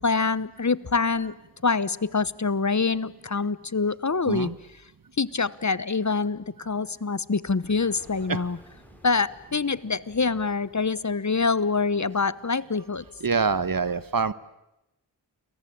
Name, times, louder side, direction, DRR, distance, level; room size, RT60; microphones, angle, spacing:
voice 1, 0.0-1.3 1.6-4.5 5.2-8.6 9.0-13.0, left 4 dB, 45° left, 19 dB, 1.1 m, -25 dB
voice 2, 4.3-4.6 8.3-8.4 13.2-14.3, right 5 dB, 55° right, 16 dB, 1.2 m, -25 dB
sound 1, 7.6-12.3, equal, 5° left, 6.8 m, -55 dB
30.0 x 22.5 x 8.6 m, 0.90 s
wide cardioid pair, 40°, 42 cm